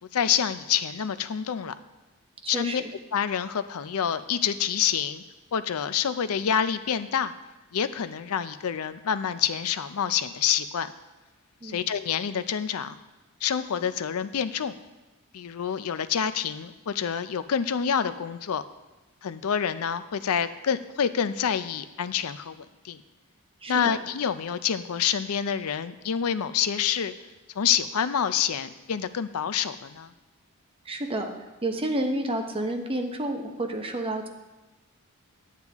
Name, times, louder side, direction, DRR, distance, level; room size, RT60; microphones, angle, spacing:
voice 1, 0.1-1.7 2.5-2.8 3.1-5.2 5.5-7.3 7.7-10.9 11.6-12.9 13.4-14.8 15.3-18.6 19.2-23.0 23.7-27.1 27.6-30.1, left 8 dB, 70° left, 13 dB, 0.5 m, -27 dB
voice 2, 2.4-2.8 11.6-11.8 23.6-23.9 30.9-31.3 31.6-34.3, right 1 dB, 25° right, 4 dB, 0.9 m, -30 dB
9.3 x 9.1 x 3.6 m, 1.1 s
head